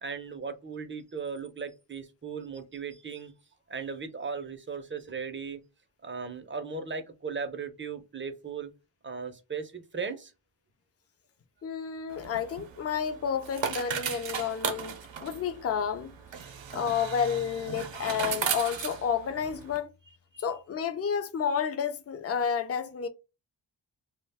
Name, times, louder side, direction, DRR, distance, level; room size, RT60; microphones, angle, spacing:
voice 1, 0.0-3.3 3.7-5.6 6.0-8.7 9.0-10.3 20.3-20.5, right 5 dB, 25° right, 0.5 m, -37 dB
voice 2, 11.6-14.9 15.2-16.1 16.7-19.9 20.4-23.1, left 7 dB, 35° left, 0.4 m, -30 dB
sound 1, 12.1-19.8, right 7 dB, 75° right, 0.6 m, -36 dB
2.3 x 2.1 x 3.3 m
wide cardioid pair, 85°, 45 cm